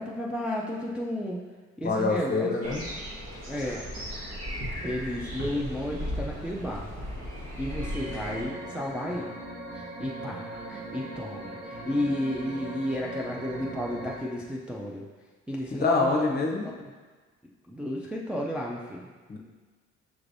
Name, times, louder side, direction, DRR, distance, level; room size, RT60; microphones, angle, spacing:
voice 1, 0.0-1.4 1.8-2.7 3.5-3.8 4.8-6.9 7.6-9.3 9.7-15.0 15.5-16.2 16.8-16.9 17.7-19.1, equal, 5° right, -3 dB, 0.3 m, -33 dB
voice 2, 1.8-2.8 15.7-16.7 19.3-19.4, left 3 dB, 35° left, 1 dB, 0.7 m, -26 dB
sound 1, 2.6-8.4, equal, 60° right, 1.4 m, -36 dB
sound 2, 7.7-14.2, right 1 dB, 35° right, 0.9 m, -39 dB
5.9 x 3.2 x 2.6 m, 1.4 s
cardioid pair, 90°, 30 cm